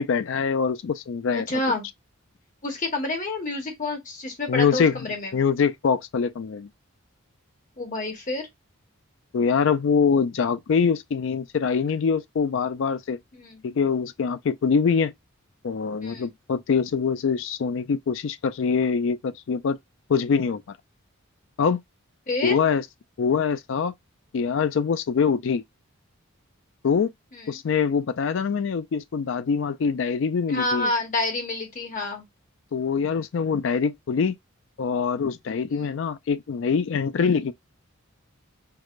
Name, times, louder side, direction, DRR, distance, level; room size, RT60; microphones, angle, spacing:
voice 1, 0.0-1.5 4.5-5.0 5.3-6.7 9.3-13.2 13.6-15.1 15.6-19.8 20.1-20.8 21.6-21.8 22.4-22.8 23.2-23.9 24.3-25.6 26.8-27.1 27.5-30.9 32.7-34.4 34.8-37.5, left 6 dB, 60° left, 0.4 m, -24 dB
voice 2, 1.3-1.9 2.6-5.3 7.8-8.5 13.4-13.6 16.0-16.3 22.3-22.6 27.3-27.5 30.5-32.2 35.7-35.9, left 2 dB, 40° left, 1.2 m, -28 dB
4.7 x 2.1 x 2.4 m
head